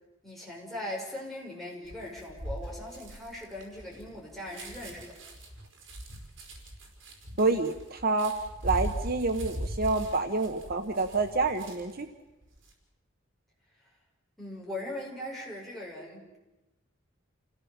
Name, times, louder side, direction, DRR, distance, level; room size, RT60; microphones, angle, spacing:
voice 1, 0.2-5.1 14.4-16.4, left 1 dB, ahead, -4 dB, 6.1 m, -40 dB
sound 1, 1.9-12.0 12.4-12.7, equal, 75° right, 4.8 m, -40 dB
voice 2, 7.4-8.3 8.6-12.1, right 3 dB, 50° right, 6 dB, 1.1 m, -28 dB
28.0 x 16.5 x 7.3 m, 1.0 s
head